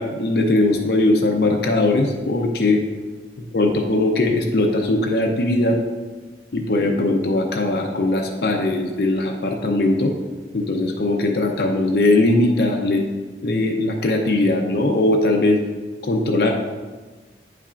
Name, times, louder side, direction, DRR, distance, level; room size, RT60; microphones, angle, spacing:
voice 1, 0.0-2.8 3.5-5.8 6.5-10.1 10.5-13.0 13.4-15.6 16.0-16.5, left 2 dB, 65° left, 2 dB, 0.6 m, -20 dB
9.1 x 5.6 x 2.5 m, 1.3 s
head